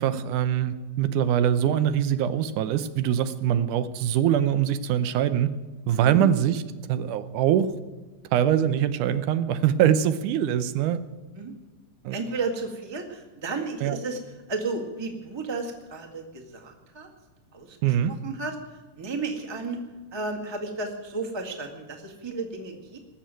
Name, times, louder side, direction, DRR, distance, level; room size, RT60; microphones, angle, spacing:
voice 1, 0.0-5.5 5.9-6.5 6.9-7.7 8.3-11.0 12.1-12.2 13.8-14.0 17.8-18.1, right 10 dB, 80° right, 12 dB, 2.3 m, -23 dB
voice 2, 12.1-14.2 14.5-17.1 17.5-19.8 20.1-23.0, right 3 dB, 15° right, 3 dB, 1.1 m, -33 dB
20.0 x 7.4 x 9.0 m, 1.3 s
omnidirectional pair, 3.6 m